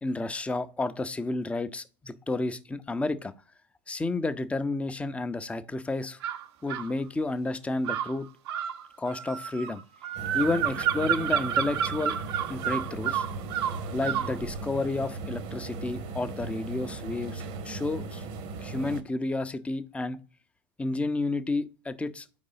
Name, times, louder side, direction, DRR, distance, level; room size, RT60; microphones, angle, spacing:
voice 1, 0.0-3.3 3.9-6.2 6.6-8.3 9.0-9.8 10.3-12.2 12.5-13.3 13.9-18.2 18.6-20.2 20.8-22.3, left 2 dB, 10° left, 0.5 m, -31 dB
sound 1, 6.2-6.9 7.8-14.4, right 10 dB, 70° right, 0.7 m, -30 dB
sound 2, 10.1-19.0, right 3 dB, 50° right, 1.0 m, -38 dB
4.6 x 3.8 x 5.5 m
hypercardioid pair, 115°, 14 cm